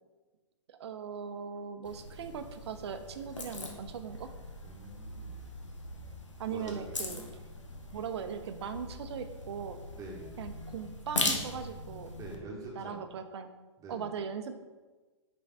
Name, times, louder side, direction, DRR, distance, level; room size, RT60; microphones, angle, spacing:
voice 1, 0.7-4.3 6.4-7.2 7.9-9.8 10.4-12.1 12.7-13.5 13.9-14.6, right 7 dB, 65° right, 9 dB, 0.6 m, -39 dB
sound 1, 1.8-12.4, left 2 dB, 90° left, 0.9 m, -40 dB
voice 2, 4.6-5.4 6.5-6.8 9.9-10.3 12.2-13.1 13.8-14.1, right 2 dB, 20° right, -1 dB, 1.4 m, -45 dB
5.3 x 5.2 x 3.5 m, 1.3 s
figure-of-eight pair, 115°, 15 cm